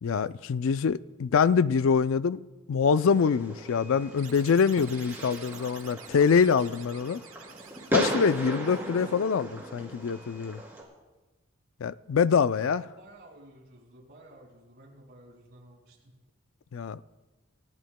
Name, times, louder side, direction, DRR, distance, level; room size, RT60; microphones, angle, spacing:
voice 1, 0.0-2.4 2.7-7.2 7.9-10.6 11.8-12.8 16.7-17.0, left 6 dB, 70° left, 0.4 m, -25 dB
Fireworks, 3.0-10.8, equal, 10° right, 2.7 m, -36 dB
sound 1, 4.2-9.6, right 8 dB, 80° right, 1.2 m, -50 dB
Snare drum, 5.1-5.8 6.3-7.0 7.5-9.4, right 3 dB, 30° right, 4.8 m, -58 dB
voice 2, 12.5-16.1, right 1 dB, 50° right, 5.9 m, -52 dB
29.0 x 14.0 x 2.2 m
head